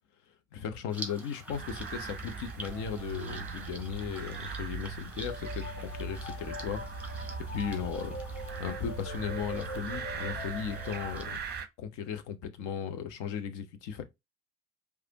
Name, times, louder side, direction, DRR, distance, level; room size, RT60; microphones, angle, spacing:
voice 1, 0.5-6.8 7.1-8.2 8.6-11.4 11.8-14.0, left 8 dB, 55° left, 0.9 m, -36 dB
sound 1, 0.9-11.6, right 1 dB, 5° right, 1.6 m, -48 dB
sound 2, 1.5-11.7, right 5 dB, 30° right, 0.8 m, -41 dB
sound 3, 2.6-11.3, equal, 25° left, 1.2 m, -43 dB
5.0 x 3.3 x 2.8 m
figure-of-eight pair, 50°, 36 cm